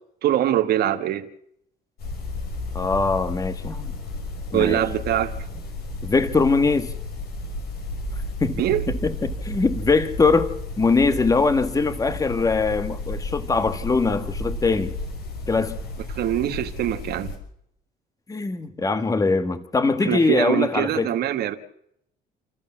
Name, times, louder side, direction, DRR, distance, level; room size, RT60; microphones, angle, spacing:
voice 1, 0.2-1.3 4.5-5.3 8.6-8.8 16.1-17.3 20.0-21.6, right 12 dB, 70° right, 1.9 m, -23 dB
sound 1, 2.0-17.4, left 2 dB, 70° left, 5.6 m, -33 dB
voice 2, 2.7-3.9 4.5-4.8 6.0-6.9 8.4-8.6 9.0-14.9 15.5-15.8 18.3-21.1, left 4 dB, 20° left, 1.7 m, -22 dB
28.5 x 14.0 x 7.4 m
cardioid pair, 110°, 17 cm